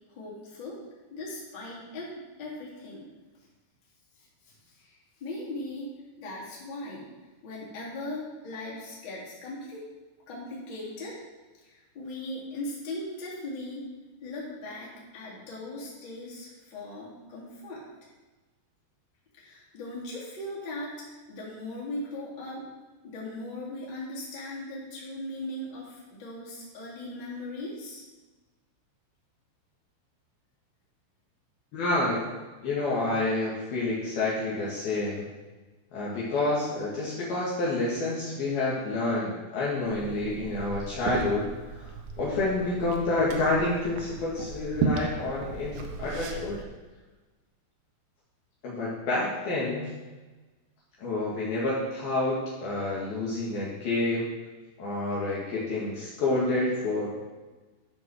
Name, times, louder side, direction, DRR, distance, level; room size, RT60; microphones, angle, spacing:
voice 1, 0.1-0.8 1.1-2.1 2.4-3.1 4.2-5.9 6.2-7.1 7.4-9.8 10.3-11.2 11.6-13.8 14.2-17.9 19.4-22.6 23.0-28.0, left 1 dB, 25° left, -6 dB, 3.0 m, -39 dB
voice 2, 31.7-32.2 32.6-35.3 35.9-41.5 41.8-41.9 42.2-46.6 48.6-49.9 51.0-54.3 54.8-57.1, left 2 dB, 60° left, -6 dB, 3.3 m, -28 dB
Liquid, 39.9-46.6, right 5 dB, 85° right, 2.0 m, -35 dB
13.0 x 5.3 x 6.5 m, 1.2 s
omnidirectional pair, 5.6 m